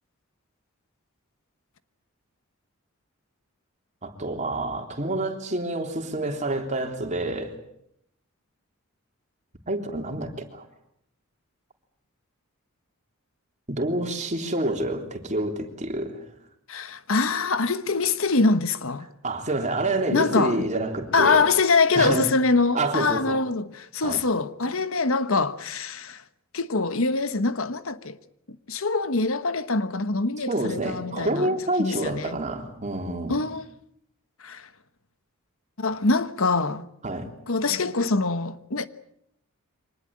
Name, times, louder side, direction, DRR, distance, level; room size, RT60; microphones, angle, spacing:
voice 1, 4.0-7.5 9.7-10.7 13.7-16.3 19.2-21.5 21.9-22.3 22.7-23.4 24.0-24.2 30.5-33.5 37.0-37.3, right 2 dB, 35° right, 3.5 m, -28 dB
voice 2, 16.7-19.1 20.1-20.6 21.1-26.2 26.5-28.2 28.7-31.5 31.8-32.4 33.3-33.6 34.4-34.7 35.8-36.9 37.5-38.9, left 3 dB, 65° left, 1.2 m, -24 dB
25.0 x 19.5 x 8.8 m
head